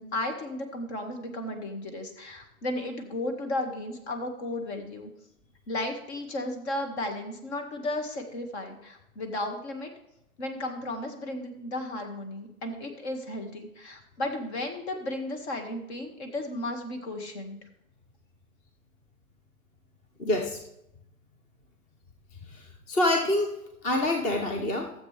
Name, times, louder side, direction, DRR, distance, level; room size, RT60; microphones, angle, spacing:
voice 1, 0.0-5.1 5.7-9.9 10.4-17.6, left 1 dB, 45° left, 5 dB, 2.0 m, -34 dB
voice 2, 20.2-20.6 22.5-23.5 23.8-24.9, left 1 dB, 15° left, 3 dB, 0.8 m, -26 dB
13.5 x 7.6 x 3.4 m, 0.84 s
hypercardioid pair, 135°, 44 cm